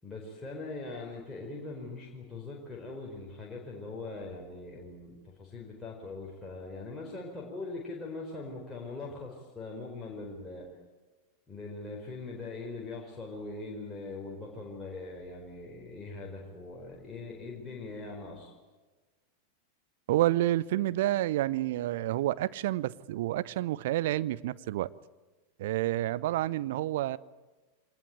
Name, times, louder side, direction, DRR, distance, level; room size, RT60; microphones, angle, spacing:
voice 1, 0.0-10.7 11.5-18.5, left 3 dB, 10° left, -3 dB, 4.6 m, -41 dB
voice 2, 20.1-24.9 25.6-27.2, right 15 dB, 55° right, 17 dB, 0.7 m, -29 dB
24.0 x 20.0 x 9.2 m, 1.2 s
figure-of-eight pair, 90°, 0 cm